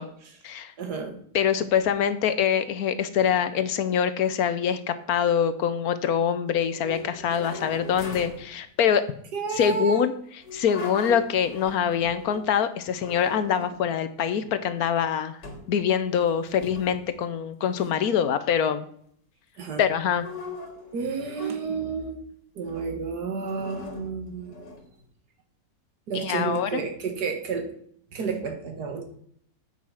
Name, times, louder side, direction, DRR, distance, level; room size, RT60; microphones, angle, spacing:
voice 1, 0.8-1.1 9.3-10.1 19.6-19.8 20.9-22.2 22.6-24.5 26.1-27.7 28.1-29.0, right 5 dB, 70° right, 5 dB, 1.9 m, -31 dB
voice 2, 1.3-9.0 9.5-10.1 10.5-15.4 15.7-18.8 19.8-20.3 26.1-26.8, left 8 dB, 65° left, 12 dB, 1.1 m, -24 dB
sound 1, 6.6-8.5 10.4-12.5 13.0-13.9 14.4-15.0 15.4-15.8 16.0-17.2 17.7-17.9 20.1-22.0 22.6-23.0 23.4-25.0, left 3 dB, 90° left, 2.4 m, -40 dB
8.9 x 5.8 x 5.6 m, 0.64 s
omnidirectional pair, 1.8 m